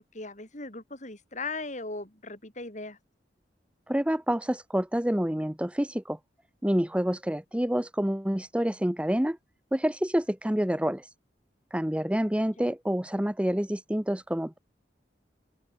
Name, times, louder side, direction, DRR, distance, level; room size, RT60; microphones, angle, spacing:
voice 1, 0.0-3.0 12.6-12.7, left 3 dB, 45° left, 4.7 m, -38 dB
voice 2, 3.9-6.2 6.6-9.4 9.7-11.1 11.7-14.6, equal, 5° right, 0.8 m, -27 dB
open air
head